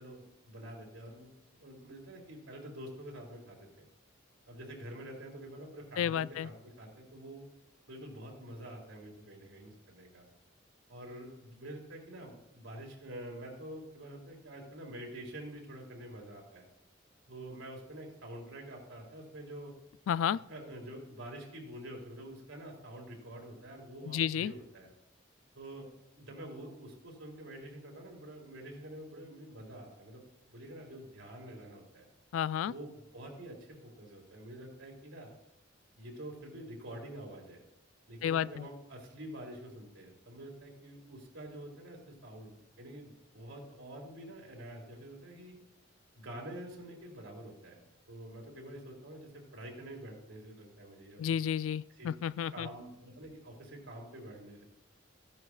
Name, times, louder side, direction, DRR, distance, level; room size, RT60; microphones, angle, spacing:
voice 1, 0.0-3.9 4.5-7.5 7.9-10.3 10.9-16.6 17.3-19.7 20.5-24.9 25.5-25.9 26.2-32.1 32.6-35.3 35.9-37.6 38.1-45.6 46.1-47.8 48.1-51.4 51.9-52.1 52.5-54.6, right 1 dB, 90° right, 0 dB, 3.2 m, -47 dB
voice 2, 6.0-6.5 20.1-20.4 24.1-24.5 32.3-32.7 38.2-38.7 51.2-52.7, left 9 dB, 90° left, 20 dB, 0.3 m, -31 dB
15.0 x 11.0 x 2.5 m, 0.85 s
head